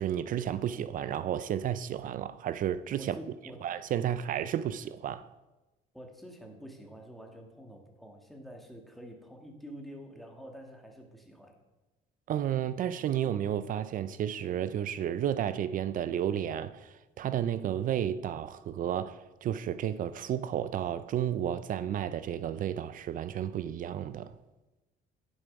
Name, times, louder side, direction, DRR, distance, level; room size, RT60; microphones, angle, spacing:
voice 1, 0.0-3.2 3.6-5.3 12.3-24.4, right 10 dB, 55° right, 0.5 m, -32 dB
voice 2, 3.0-3.7 5.9-11.6, equal, ahead, 1.8 m, -48 dB
9.8 x 7.2 x 5.2 m
cardioid pair, 110°, 17 cm